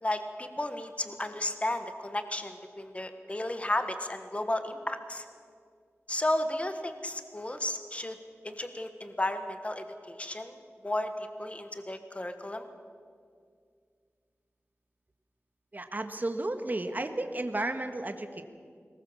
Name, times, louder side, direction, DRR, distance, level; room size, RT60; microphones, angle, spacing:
voice 1, 0.0-5.2 6.1-8.2 8.4-10.6 10.8-12.7, left 1 dB, 25° left, 8 dB, 1.4 m, -33 dB
voice 2, 15.7-18.4, right 2 dB, 35° right, 7 dB, 1.6 m, -33 dB
22.5 x 19.5 x 7.2 m, 2.1 s
wide cardioid pair, 80°, 5 cm